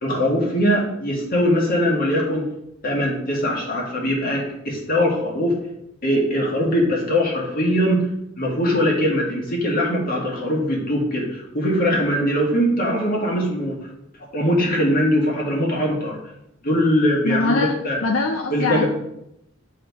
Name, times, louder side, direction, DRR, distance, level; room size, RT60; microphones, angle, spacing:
voice 1, 0.0-2.5 2.8-5.5 6.0-8.0 8.4-13.8 14.3-16.2 16.6-18.0 18.5-18.8, equal, 45° left, -2 dB, 1.8 m, -21 dB
voice 2, 17.2-17.7 18.0-18.8, left 3 dB, 80° left, 3 dB, 0.6 m, -22 dB
9.7 x 3.7 x 3.5 m, 0.82 s
head